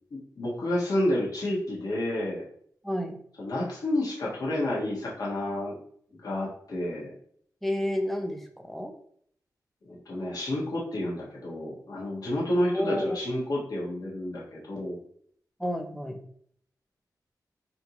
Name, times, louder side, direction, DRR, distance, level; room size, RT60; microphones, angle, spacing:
voice 1, 0.1-2.4 3.4-5.8 6.1-7.1 9.8-15.0, left 1 dB, 60° left, -5 dB, 1.3 m, -30 dB
voice 2, 2.8-3.2 7.6-8.9 12.7-13.2 15.6-16.2, left 1 dB, ahead, 4 dB, 0.5 m, -30 dB
4.1 x 2.8 x 2.9 m, 0.62 s
wide cardioid pair, 125°, 7 cm